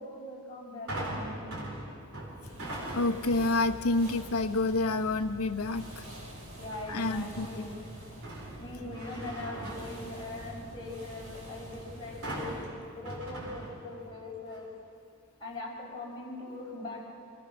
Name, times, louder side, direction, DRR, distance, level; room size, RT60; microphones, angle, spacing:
voice 1, 0.0-1.7 6.6-7.8 8.6-12.5 13.0-14.7 15.4-17.1, left 2 dB, 20° left, -6 dB, 5.5 m, -41 dB
sound 1, 0.9-3.4 3.9-4.3 6.7-7.4 7.8-10.7 12.2-14.2 14.5-14.6, right 1 dB, 70° right, 4.0 m, -41 dB
sound 2, 2.4-12.7, equal, 90° right, 6.6 m, -46 dB
voice 2, 2.9-6.0 6.9-7.7, left 2 dB, 80° left, 8 dB, 1.0 m, -28 dB
26.5 x 16.5 x 6.1 m, 2.4 s
head